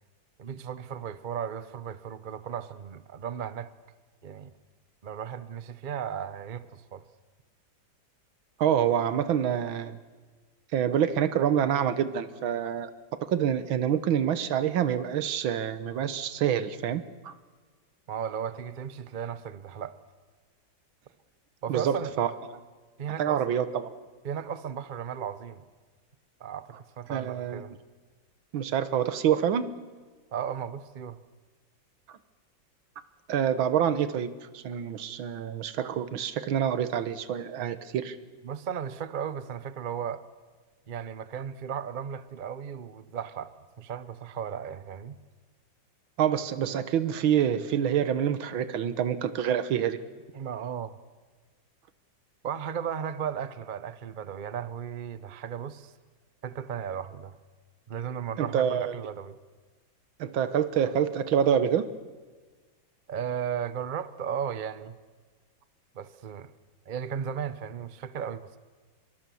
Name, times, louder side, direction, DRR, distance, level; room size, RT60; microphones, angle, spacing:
voice 1, 0.4-3.7 4.2-4.5 5.0-7.0 18.1-20.0 21.6-22.1 23.0-23.4 24.2-25.6 26.4-27.7 30.3-31.2 38.4-40.2 40.9-45.2 50.3-51.0 52.4-55.9 56.4-57.3 57.9-59.4 63.1-65.0 65.9-66.5 66.9-68.6, right 8 dB, 50° right, 0.5 m, -35 dB
voice 2, 8.6-10.0 10.7-12.9 13.2-17.3 21.7-22.3 23.2-23.9 27.1-27.6 28.5-29.7 33.3-38.2 46.2-50.0 58.4-58.9 60.2-61.9, right 9 dB, 85° right, 1.9 m, -27 dB
25.0 x 22.5 x 7.1 m
omnidirectional pair, 2.1 m